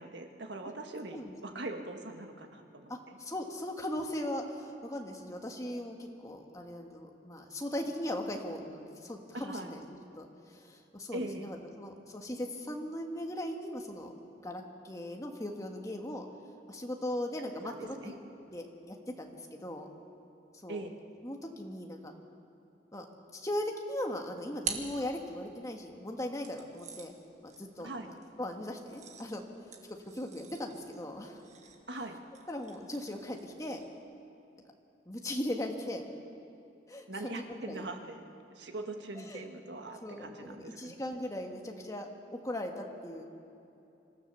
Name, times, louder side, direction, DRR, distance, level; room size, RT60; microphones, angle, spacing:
voice 1, 0.0-3.2 9.3-9.7 11.1-11.6 17.6-18.2 20.7-20.9 27.8-28.1 31.9-32.2 37.1-38.2 38.5-40.9, right 2 dB, 75° right, 4 dB, 1.6 m, -41 dB
voice 2, 1.1-1.6 2.9-9.8 10.2-14.1 14.4-16.3 16.7-18.1 18.5-19.9 20.6-20.9 21.2-22.1 22.9-23.0 23.3-27.1 27.4-29.4 30.1-31.4 32.5-33.8 35.0-36.0 36.9-37.9 39.1-39.5 40.0-43.2, left 1 dB, 20° left, 2 dB, 1.6 m, -39 dB
sound 1, 23.9-25.7 26.4-34.0, right 6 dB, 40° right, 1.6 m, -46 dB
25.5 x 15.0 x 6.8 m, 2.7 s
head